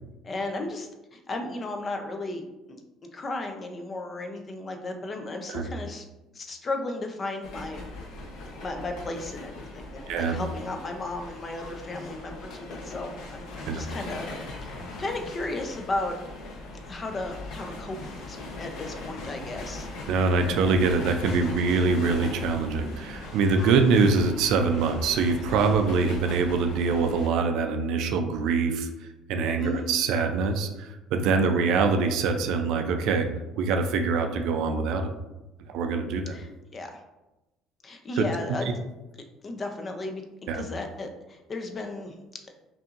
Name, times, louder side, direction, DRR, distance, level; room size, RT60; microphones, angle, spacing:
voice 1, 0.2-6.1 6.3-7.8 8.6-14.3 14.6-16.1 16.9-18.0 18.3-19.9 29.6-29.9 36.3-37.0 37.8-38.7 39.4-40.2 40.5-42.1, left 2 dB, 25° left, 4 dB, 0.5 m, -34 dB
sound 1, 7.4-27.3, left 2 dB, 85° left, 0.8 m, -40 dB
voice 2, 20.1-28.9 29.3-33.3 33.6-35.1 35.7-36.4 38.2-38.3 40.5-40.7, right 4 dB, 65° right, 6 dB, 0.4 m, -24 dB
5.6 x 2.6 x 2.4 m, 1.0 s
cardioid pair, 160°, 0 cm